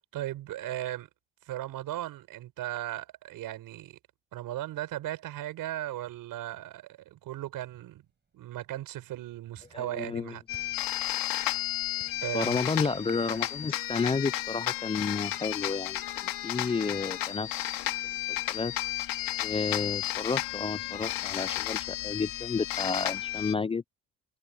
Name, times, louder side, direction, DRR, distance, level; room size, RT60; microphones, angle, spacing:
voice 1, 0.1-1.1 1.5-4.0 4.3-8.0 8.3-10.4 12.2-12.6, right 14 dB, 70° right, 6.0 m, -37 dB
sound 1, 8.1-8.3 8.6-14.4, right 5 dB, 30° right, 7.1 m, -55 dB
voice 2, 9.7-10.4 12.3-17.5 17.8-17.9 18.5-18.7 19.4-23.8, left 4 dB, 15° left, 0.4 m, -31 dB
sound 2, 10.5-23.5, left 15 dB, 75° left, 2.5 m, -33 dB
supercardioid pair, 80°, 34 cm